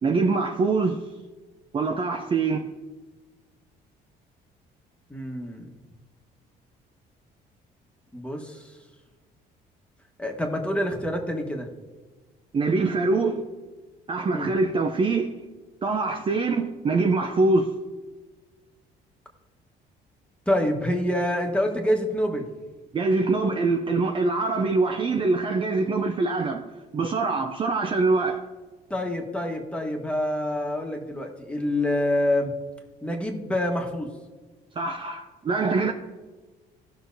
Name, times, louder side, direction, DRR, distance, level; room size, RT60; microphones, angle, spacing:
voice 1, 0.0-1.0 1.7-2.6 12.5-13.5 14.1-15.3 15.8-17.7 22.9-26.7 26.9-28.4 34.8-35.9, right 3 dB, 30° right, 0.6 m, -24 dB
voice 2, 5.1-5.7 8.1-8.7 10.2-11.7 14.3-14.5 20.5-22.5 28.9-32.5 33.0-34.1, left 1 dB, 5° left, 1.4 m, -26 dB
17.0 x 6.0 x 2.7 m
cardioid pair, 110°, 17 cm